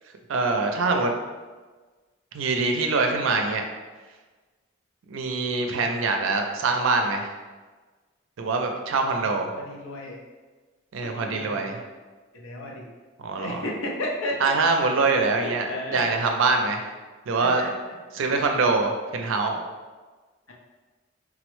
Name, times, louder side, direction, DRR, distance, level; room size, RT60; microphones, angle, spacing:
voice 1, 0.3-1.1 2.3-3.6 5.1-7.3 8.4-9.5 10.9-11.8 13.2-13.6 14.4-16.9 17.3-17.6 18.2-19.6, right 3 dB, 80° right, 4 dB, 0.4 m, -24 dB
voice 2, 9.5-10.2 11.0-11.7 12.3-12.8 13.4-14.5 15.4-16.2 17.4-17.7 20.5-20.6, left 1 dB, 85° left, -2 dB, 0.6 m, -33 dB
3.6 x 2.0 x 3.0 m, 1.3 s
head